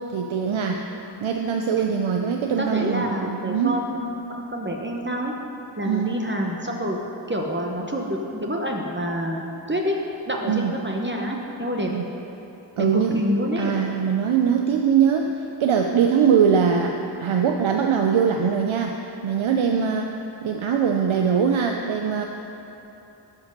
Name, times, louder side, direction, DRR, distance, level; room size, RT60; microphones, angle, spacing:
voice 1, 0.1-0.8 1.2-3.8 5.9-6.2 10.5-10.7 11.9-12.1 12.8-13.2 13.6-16.9 17.2-19.0 19.2-20.1 20.4-22.3, right 7 dB, 85° right, 3 dB, 0.6 m, -22 dB
voice 2, 2.6-5.3 5.8-7.0 7.3-9.4 9.7-9.9 10.3-11.9 12.8-13.7, equal, 25° right, 0 dB, 0.9 m, -27 dB
13.0 x 5.4 x 5.3 m, 2.9 s
wide cardioid pair, 65°, 46 cm